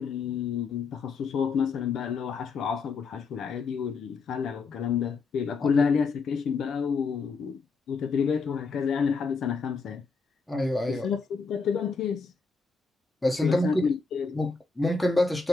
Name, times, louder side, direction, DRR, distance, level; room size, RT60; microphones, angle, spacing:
voice 1, 0.0-7.6 7.9-10.0 10.9-12.3 13.4-14.4, left 7 dB, 70° left, 0.4 m, -29 dB
voice 2, 10.5-11.1 13.2-13.9 14.3-15.5, left 1 dB, 10° left, 0.9 m, -26 dB
3.2 x 2.0 x 2.9 m
cardioid pair, 90°, 0 cm